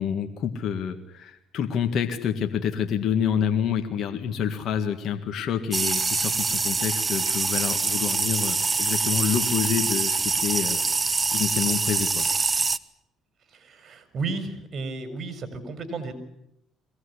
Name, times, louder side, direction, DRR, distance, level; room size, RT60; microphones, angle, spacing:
voice 1, 0.0-10.8 11.1-12.3, left 8 dB, 65° left, 6 dB, 1.8 m, -28 dB
sound 1, 5.7-12.8, right 4 dB, 25° right, 0.9 m, -25 dB
voice 2, 13.5-16.1, right 3 dB, 45° right, 9 dB, 4.9 m, -33 dB
23.0 x 17.5 x 9.8 m, 0.81 s
cardioid pair, 95°, 0 cm